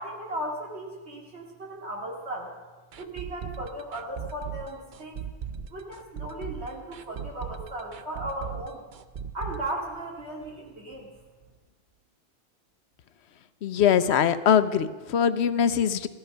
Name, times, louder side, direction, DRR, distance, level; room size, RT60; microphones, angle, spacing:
voice 1, 0.0-2.5 3.0-5.2 5.7-8.8 9.3-11.1, right 1 dB, 80° right, -1 dB, 2.8 m, -36 dB
sound 1, 2.9-10.7 10.9-11.0 11.4-11.5, right 8 dB, 55° right, 0.7 m, -38 dB
voice 2, 13.6-16.1, left 8 dB, 80° left, 13 dB, 1.0 m, -22 dB
16.0 x 12.0 x 5.5 m, 1.3 s
omnidirectional pair, 1.1 m